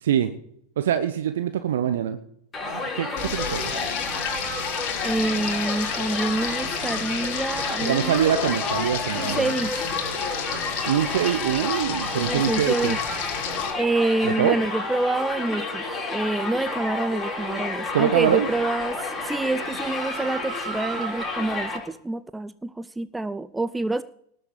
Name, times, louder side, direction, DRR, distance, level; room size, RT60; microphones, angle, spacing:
voice 1, 0.0-0.3 0.8-2.2 2.9-3.7 7.8-9.5 10.8-13.0 14.2-14.6 17.9-18.5, right 9 dB, 60° right, 10 dB, 0.9 m, -24 dB
Crowd, 2.5-21.8, left 3 dB, 15° left, 5.9 m, -30 dB
Frying (food), 3.2-13.7, left 7 dB, 45° left, 2.7 m, -32 dB
voice 2, 5.0-8.2 9.2-9.9 12.1-13.0 13.8-24.0, right 2 dB, 5° right, 15 dB, 0.5 m, -27 dB
19.0 x 6.9 x 7.1 m, 0.71 s
figure-of-eight pair, 90°, 0 cm